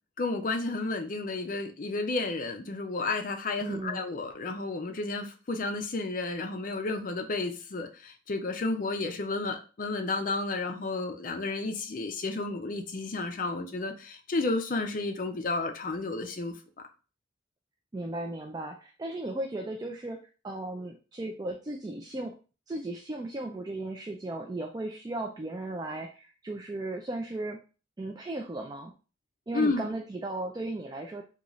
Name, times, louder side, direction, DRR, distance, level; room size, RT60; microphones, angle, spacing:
voice 1, 0.2-16.5 29.5-29.8, left 3 dB, 45° left, 5 dB, 0.5 m, -32 dB
voice 2, 3.6-4.0 17.9-20.2 20.4-22.4 22.7-27.6 28.0-28.9 29.5-31.2, right 2 dB, 20° right, 2 dB, 0.3 m, -36 dB
3.8 x 2.4 x 3.0 m, 0.34 s
head